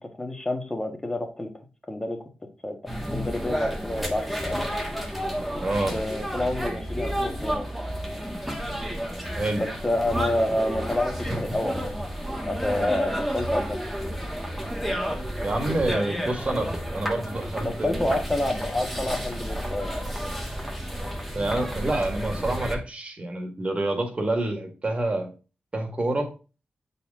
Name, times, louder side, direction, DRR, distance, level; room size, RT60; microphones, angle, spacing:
voice 1, 0.0-1.5 1.9-2.2 2.6-4.7 5.5-5.6 5.9-7.7 9.6-11.8 12.4-13.8 17.6-20.0, left 1 dB, 20° left, 4 dB, 1.6 m, -28 dB
sound 1, 2.9-22.7, equal, ahead, 1.5 m, -31 dB
voice 2, 5.6-5.9 9.4-9.7 15.4-18.2 21.3-25.3 25.7-26.3, right 2 dB, 35° right, 3 dB, 1.8 m, -27 dB
7.7 x 4.2 x 3.7 m, 0.33 s
wide cardioid pair, 85°, 3 cm